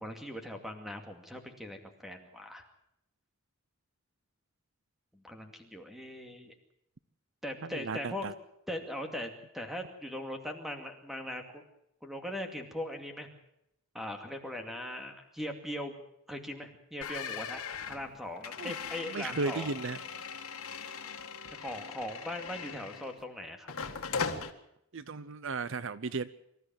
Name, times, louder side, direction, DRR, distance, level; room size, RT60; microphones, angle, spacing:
voice 1, 0.0-2.6 5.1-6.5 7.4-8.3 8.7-11.6 12.0-13.3 13.9-16.0 16.3-19.7 21.5-23.7, left 1 dB, ahead, 5 dB, 2.4 m, -40 dB
voice 2, 7.6-8.3 18.6-18.7 19.1-20.0 24.9-26.3, right 4 dB, 60° right, 16 dB, 0.7 m, -35 dB
sound 1, 17.0-23.2 23.7-24.5, left 5 dB, 85° left, 1.9 m, -39 dB
25.5 x 13.5 x 7.6 m, 0.80 s
head